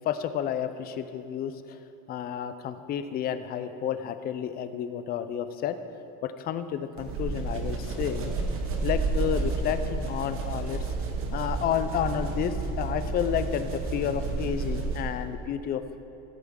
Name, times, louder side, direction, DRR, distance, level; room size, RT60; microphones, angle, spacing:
voice 1, 0.0-1.8 2.1-5.8 6.2-8.3 8.8-10.9 11.3-15.8, left 9 dB, 30° left, 11 dB, 0.3 m, -31 dB
sound 1, 7.0-15.3, right 3 dB, 40° right, 1.1 m, -31 dB
14.0 x 8.3 x 3.6 m, 2.9 s
cardioid pair, 165°, 34 cm